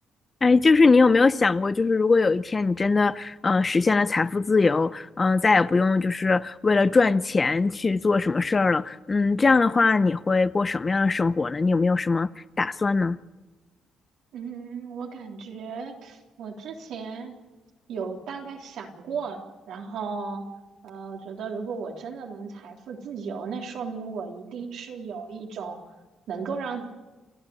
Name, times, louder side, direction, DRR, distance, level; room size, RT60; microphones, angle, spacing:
voice 1, 0.4-12.3 12.6-13.2, left 4 dB, 30° left, 0.7 m, -21 dB
voice 2, 14.3-17.3 17.9-20.5 20.8-25.8 26.3-26.8, right 5 dB, 75° right, 3.5 m, -35 dB
29.5 x 12.5 x 10.0 m
cardioid pair, 90°, 0 cm